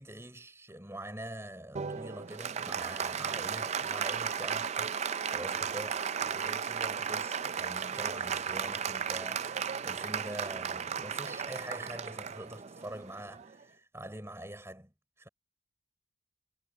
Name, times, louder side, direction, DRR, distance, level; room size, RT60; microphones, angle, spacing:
voice 1, 0.0-15.3, right 1 dB, 15° right, 5.1 m, -45 dB
Applause, 1.8-13.6, right 7 dB, 30° right, 0.4 m, -35 dB
head